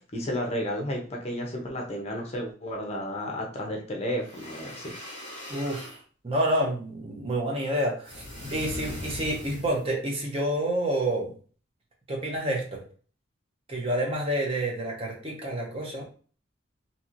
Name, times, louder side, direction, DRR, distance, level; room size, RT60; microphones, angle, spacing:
voice 1, 0.1-4.9, equal, 30° left, 1 dB, 0.6 m, -32 dB
sound 1, 4.2-6.0 8.0-9.9, left 1 dB, 65° right, 1.5 m, -40 dB
voice 2, 5.5-8.2 8.5-11.3 12.1-12.8 13.7-16.0, right 1 dB, 30° right, -1 dB, 0.7 m, -28 dB
2.9 x 2.8 x 2.5 m, 0.41 s
head